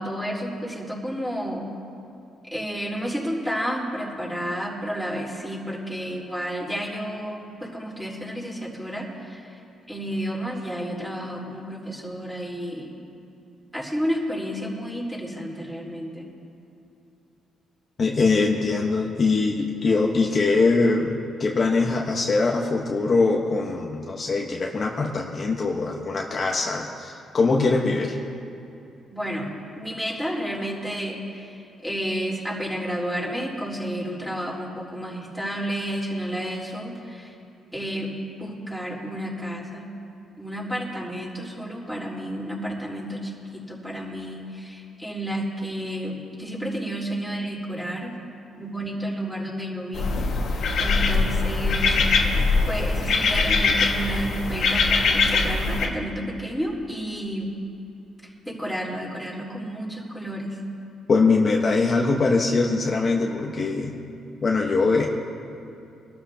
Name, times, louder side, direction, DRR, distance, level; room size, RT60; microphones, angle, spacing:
voice 1, 0.0-1.7 2.5-9.5 9.9-12.9 13.7-16.3 29.1-29.5 29.8-37.3 37.7-38.1 38.4-39.9 40.4-48.1 48.6-50.3 50.8-52.0 52.7-57.5 58.5-60.6, equal, 5° right, -5 dB, 4.0 m, -31 dB
voice 2, 18.0-28.2 61.1-64.0 64.4-65.1, left 3 dB, 40° left, -1 dB, 1.2 m, -22 dB
sound 1, 49.9-55.9, left 4 dB, 70° left, 1.8 m, -22 dB
24.5 x 13.0 x 2.9 m, 2.7 s
cardioid pair, 90°, 0 cm